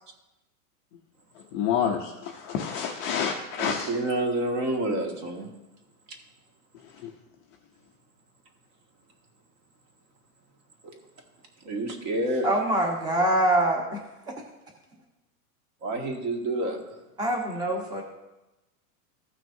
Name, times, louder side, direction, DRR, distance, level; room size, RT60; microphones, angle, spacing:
voice 1, 1.5-3.9, left 7 dB, 25° left, 1 dB, 0.5 m, -28 dB
voice 2, 3.6-5.5 6.1-6.2 10.8-11.0 11.6-12.5 15.8-17.0, right 1 dB, 40° right, 2 dB, 1.8 m, -29 dB
voice 3, 12.4-14.0 17.2-18.0, right 1 dB, 10° right, 0 dB, 1.0 m, -24 dB
15.5 x 6.0 x 2.7 m, 1.0 s
supercardioid pair, 155°, 46 cm